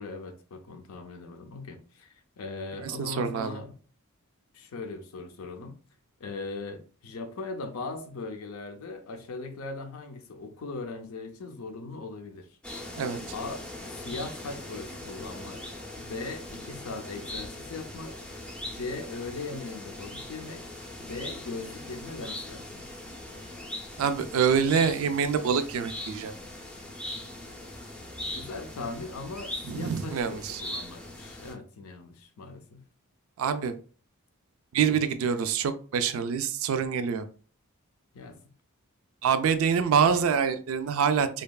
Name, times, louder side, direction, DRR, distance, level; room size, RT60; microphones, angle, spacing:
voice 1, 0.0-3.7 4.5-5.8 6.2-12.5 13.3-13.6 14.0-15.6 16.0-18.2 18.7-20.7 21.0-22.9 28.3-32.8 38.1-38.5, left 3 dB, 70° left, 0.5 m, -39 dB
voice 2, 2.8-3.6 13.0-13.2 24.0-26.3 29.7-30.6 33.4-33.7 34.7-37.2 39.2-41.4, right 6 dB, 65° right, 0.3 m, -26 dB
sound 1, 12.6-31.5, left 1 dB, 5° left, 0.4 m, -40 dB
2.8 x 2.3 x 2.2 m
head